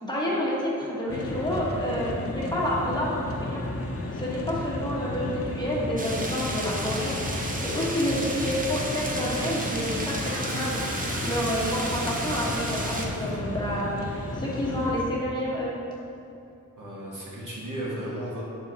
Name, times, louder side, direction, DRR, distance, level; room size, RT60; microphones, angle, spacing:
voice 1, 0.0-3.6 4.1-10.8 11.2-15.8 17.2-17.3, equal, 15° left, -6 dB, 1.2 m, -29 dB
sound 1, 1.1-15.0, left 2 dB, 45° left, 0.6 m, -33 dB
sound 2, 6.0-13.1, right 1 dB, 25° right, 0.7 m, -33 dB
Toilet flush, 9.3-13.6, right 1 dB, 40° right, 1.0 m, -39 dB
voice 2, 16.8-18.4, right 1 dB, 65° right, -6 dB, 1.5 m, -34 dB
6.2 x 3.9 x 4.0 m, 2.8 s
wide cardioid pair, 65°, 34 cm